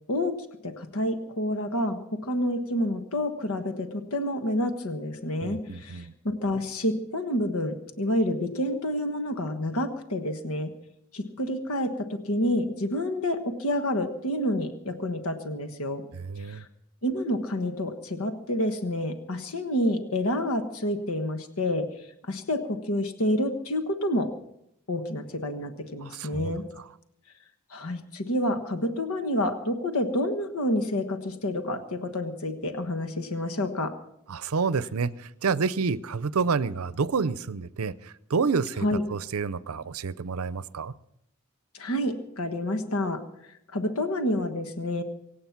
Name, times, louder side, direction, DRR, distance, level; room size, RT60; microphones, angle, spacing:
voice 1, 0.1-10.7 11.1-16.0 16.4-16.7 17.0-24.3 24.9-26.6 27.7-33.9 38.8-39.0 41.7-45.0, left 1 dB, 80° left, 1.3 m, -29 dB
voice 2, 5.4-6.1 16.1-16.6 26.0-26.8 34.3-38.8 39.1-40.9, right 5 dB, 80° right, 0.6 m, -29 dB
24.5 x 8.6 x 5.9 m
head